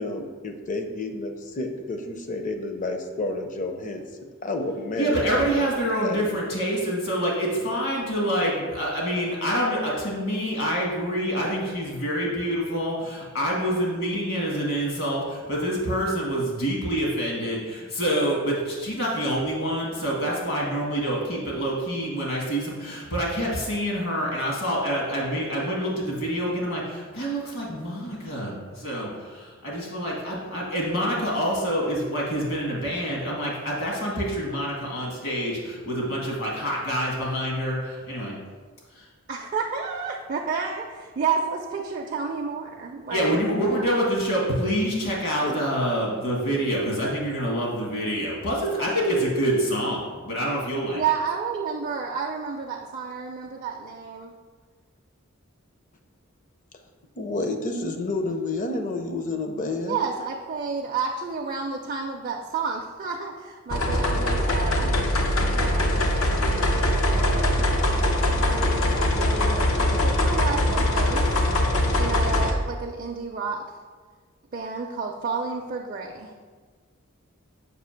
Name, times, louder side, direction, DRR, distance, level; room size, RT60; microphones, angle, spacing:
voice 1, 0.0-5.7 6.0-6.3 45.4-45.5 57.2-60.0, left 2 dB, 40° left, 5 dB, 0.5 m, -30 dB
voice 2, 5.0-38.4 39.0-39.1 43.1-51.0, equal, 70° left, -3 dB, 1.7 m, -26 dB
voice 3, 39.3-43.9 50.9-54.3 59.9-65.0 65.5-67.8 68.0-71.3 71.9-73.7 74.5-76.3, right 5 dB, 40° right, 1 dB, 0.4 m, -31 dB
sound 1, 63.7-72.5, left 1 dB, 85° left, 0.7 m, -22 dB
6.7 x 2.7 x 5.7 m, 1.5 s
head